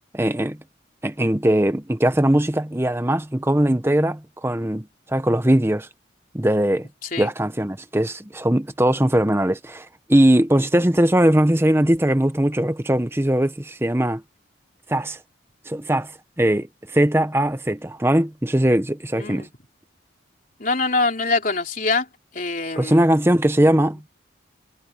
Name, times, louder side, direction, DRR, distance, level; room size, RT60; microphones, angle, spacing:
voice 1, 0.1-0.6 1.0-5.9 6.3-6.9 7.2-14.2 14.9-15.2 15.7-16.1 16.4-19.5 22.8-24.0, right 1 dB, 10° right, 0.9 m, -20 dB
voice 2, 19.1-19.5 20.6-22.1 22.3-23.1, left 3 dB, 45° left, 3.5 m, -24 dB
head